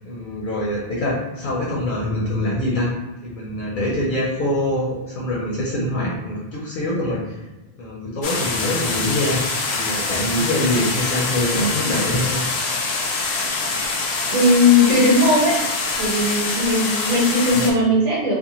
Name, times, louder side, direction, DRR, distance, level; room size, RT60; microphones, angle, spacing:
voice 1, 0.0-2.9 3.2-7.5 7.8-9.4 9.7-12.4 17.5-17.7, left 1 dB, 60° left, -4 dB, 0.6 m, -24 dB
sound 1, 8.2-17.7, left 3 dB, 85° left, 0.8 m, -24 dB
voice 2, 14.3-15.6 16.0-18.3, left 2 dB, 45° right, -4 dB, 0.8 m, -17 dB
2.5 x 2.2 x 2.9 m, 1.1 s
omnidirectional pair, 1.0 m